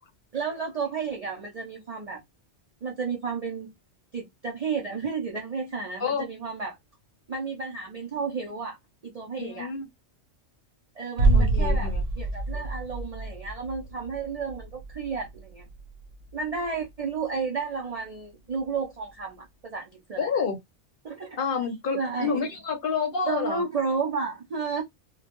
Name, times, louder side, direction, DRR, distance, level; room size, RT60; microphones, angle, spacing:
voice 1, 0.3-2.2 2.8-3.7 4.1-6.8 7.3-8.8 9.0-9.7 11.0-15.7 16.3-20.3 21.0-21.4 21.9-22.4 23.3-24.8, right 5 dB, 60° right, 0.4 m, -32 dB
voice 2, 9.4-9.9 11.3-12.0 20.2-20.6 21.4-23.6, left 5 dB, 55° left, 0.7 m, -29 dB
sound 1, 11.2-16.9 17.2-17.3, right 2 dB, 90° right, 0.9 m, -27 dB
2.2 x 2.1 x 2.8 m
omnidirectional pair, 1.3 m